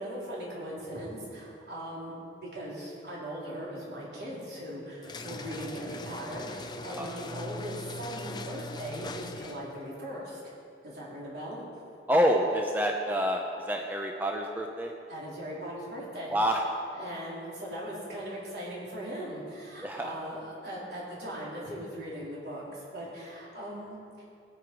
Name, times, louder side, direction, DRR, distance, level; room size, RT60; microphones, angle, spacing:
voice 1, 0.0-10.5 10.8-11.6 15.1-16.4 16.9-24.2, right 1 dB, 65° right, -6 dB, 3.8 m, -39 dB
sound 1, 5.0-9.8, left 2 dB, 25° left, 0.6 m, -40 dB
voice 2, 12.1-14.9 16.3-16.7 19.8-20.1, equal, 10° right, 1 dB, 0.7 m, -27 dB
17.5 x 10.0 x 4.7 m, 2.6 s
head